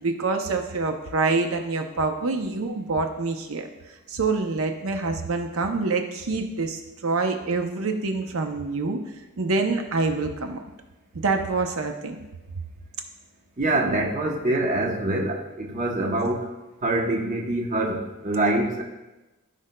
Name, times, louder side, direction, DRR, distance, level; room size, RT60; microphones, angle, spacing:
voice 1, 0.0-3.7 4.1-9.0 9.4-10.6 11.1-12.2 13.6-14.0, right 3 dB, 80° right, 5 dB, 0.6 m, -26 dB
voice 2, 13.6-16.5 16.8-18.8, right 2 dB, 35° right, 1 dB, 0.8 m, -25 dB
15.0 x 5.1 x 2.2 m, 1.1 s
head